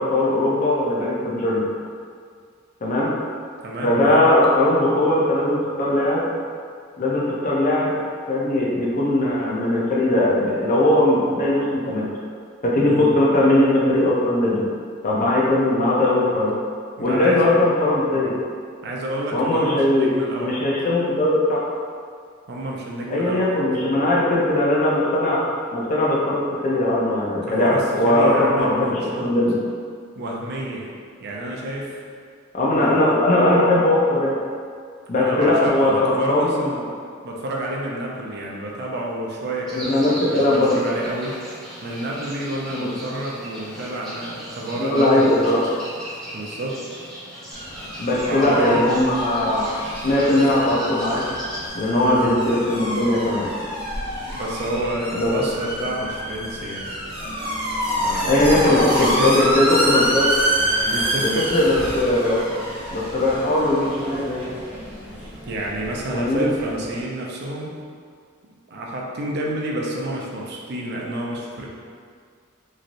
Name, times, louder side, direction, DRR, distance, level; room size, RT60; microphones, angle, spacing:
voice 1, 0.0-1.6 2.8-3.1 3.8-6.2 7.0-7.9 8.3-12.1 12.6-14.6 15.0-16.5 17.0-18.3 19.3-20.1 20.4-21.6 23.1-25.4 25.7-29.5 32.5-34.3 35.1-36.7 39.7-40.7 42.7-42.9 44.8-45.6 48.0-49.6 50.0-51.2 51.7-53.5 55.2-55.3 58.3-60.3 61.2-62.4 62.9-64.4 66.1-66.5, left 1 dB, 40° left, -5 dB, 0.5 m, -19 dB
voice 2, 3.6-4.3 12.9-13.1 17.0-17.5 18.8-20.6 22.5-23.5 27.4-29.3 30.2-30.9 31.2-32.0 32.7-33.2 35.1-36.8 37.2-41.4 41.8-45.4 46.3-47.1 48.1-48.8 51.9-52.2 54.2-56.9 58.0-59.5 60.9-61.5 65.5-67.8 68.7-71.7, right 1 dB, 55° right, -2 dB, 0.4 m, -29 dB
sound 1, 39.7-51.7, equal, ahead, 0.7 m, -38 dB
sound 2, 47.5-67.0, equal, 30° right, 0.8 m, -27 dB
3.1 x 2.5 x 2.5 m, 2.1 s
head